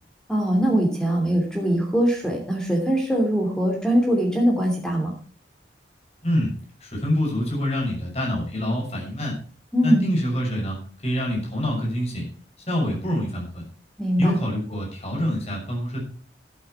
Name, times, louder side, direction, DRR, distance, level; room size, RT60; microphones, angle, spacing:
voice 1, 0.3-5.1 9.7-10.0 14.0-14.4, equal, 5° left, 0 dB, 2.8 m, -22 dB
voice 2, 6.8-9.4 9.8-10.8 11.0-12.3 12.7-13.6 14.2-16.0, equal, 35° left, -1 dB, 6.7 m, -26 dB
12.5 x 10.5 x 4.6 m, 0.41 s
head